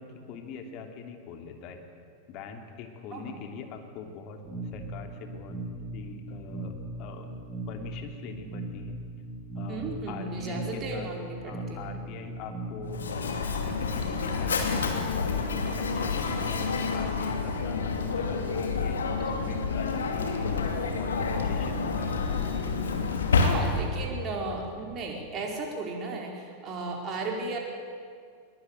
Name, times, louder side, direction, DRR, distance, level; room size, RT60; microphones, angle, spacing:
voice 1, 0.0-1.8 2.3-4.4 4.7-5.6 5.9-9.0 9.5-11.1 11.4-14.9 15.3-22.2 24.5-24.7, left 5 dB, 40° left, 5 dB, 3.0 m, -43 dB
sound 1, 4.4-13.5, right 2 dB, 5° left, 7.7 m, -39 dB
voice 2, 9.7-12.0 19.2-19.6 23.3-27.6, right 3 dB, 30° right, 0 dB, 4.6 m, -35 dB
Mechanisms, 12.9-24.0, left 4 dB, 70° left, 2.7 m, -28 dB
21.5 x 20.5 x 9.7 m, 2.1 s
figure-of-eight pair, 90°, 0 cm